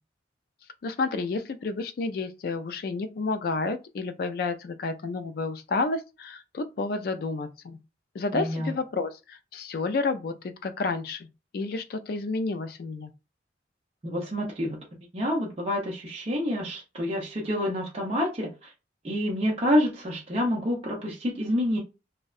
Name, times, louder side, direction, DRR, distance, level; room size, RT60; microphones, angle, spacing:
voice 1, 0.8-7.8 8.1-11.3 11.5-13.1, left 3 dB, 55° left, 0.3 m, -30 dB
voice 2, 8.3-8.7 14.0-14.8 15.1-18.7 19.0-21.8, equal, 35° right, 0.6 m, -28 dB
2.6 x 2.1 x 2.4 m
head